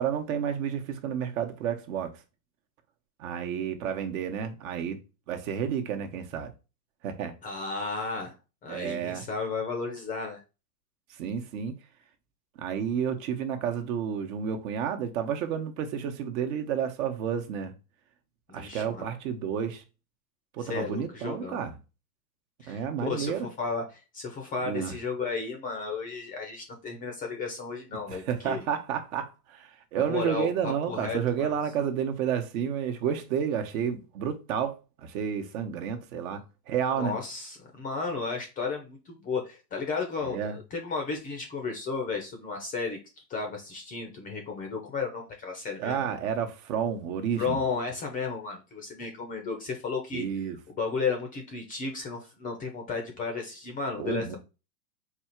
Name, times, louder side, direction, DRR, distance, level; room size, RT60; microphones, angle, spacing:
voice 1, 0.0-2.2 3.2-5.0 5.3-6.5 7.0-7.4 8.7-9.2 11.2-11.7 12.6-17.7 18.5-19.8 20.5-21.8 22.7-23.5 24.6-24.9 28.1-37.2 40.2-40.6 45.8-47.6 50.1-50.6 54.0-54.4, right 8 dB, 55° right, 1.0 m, -31 dB
voice 2, 7.4-8.3 8.6-10.4 18.5-19.0 20.7-21.6 22.6-28.6 29.9-31.6 36.9-43.0 43.3-46.0 47.4-50.2 50.7-54.4, left 4 dB, 15° left, 0.5 m, -33 dB
4.2 x 2.4 x 4.3 m
supercardioid pair, 135°, 50 cm